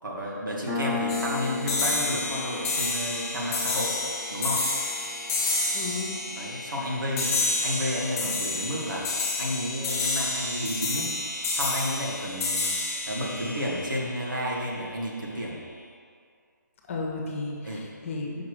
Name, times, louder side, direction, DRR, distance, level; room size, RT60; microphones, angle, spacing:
voice 1, 0.0-4.0 4.3-4.6 6.4-9.1 9.4-11.1 11.5-12.7 13.1-15.6 17.6-17.8, equal, 80° right, -4 dB, 2.0 m, -31 dB
Piano, 0.7-7.8, left 5 dB, 10° right, 1.0 m, -37 dB
sound 1, 1.1-14.5, left 2 dB, 20° left, 1.7 m, -30 dB
voice 2, 5.7-6.1 16.9-18.4, left 3 dB, 40° left, 0 dB, 1.2 m, -33 dB
5.8 x 4.8 x 6.3 m, 2.2 s
figure-of-eight pair, 155°, 11 cm